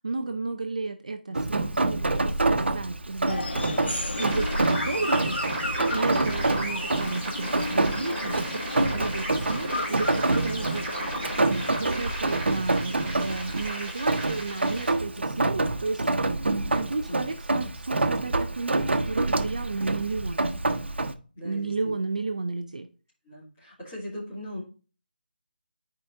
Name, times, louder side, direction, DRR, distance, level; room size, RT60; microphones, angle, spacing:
voice 1, 0.0-3.5 4.2-5.4 5.9-10.9 11.4-16.0 16.7-20.6 21.4-22.9, right 3 dB, 40° right, 0.5 m, -32 dB
voice 2, 1.3-1.6 15.1-15.6 17.1-17.2 21.3-21.9 23.2-24.6, left 1 dB, 10° left, 2.6 m, -39 dB
Rain, 1.3-21.1, right 2 dB, 85° right, 1.0 m, -27 dB
sound 1, 3.3-12.0, left 2 dB, 75° left, 1.7 m, -35 dB
sound 2, 4.1-14.9, right 2 dB, 15° right, 1.9 m, -35 dB
10.5 x 5.1 x 2.5 m
figure-of-eight pair, 180°, 6 cm